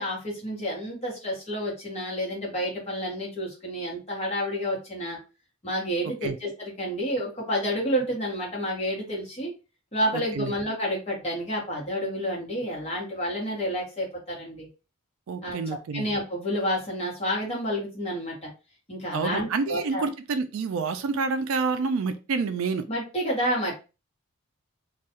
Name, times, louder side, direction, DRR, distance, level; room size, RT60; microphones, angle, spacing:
voice 1, 0.0-5.2 5.6-9.5 9.9-14.7 15.4-15.6 15.9-18.5 18.9-20.1 22.9-23.7, equal, 30° left, -4 dB, 1.0 m, -29 dB
voice 2, 10.1-10.5 15.3-16.1 19.1-22.8, right 4 dB, 65° right, 9 dB, 0.3 m, -28 dB
2.3 x 2.2 x 2.8 m, 0.31 s
head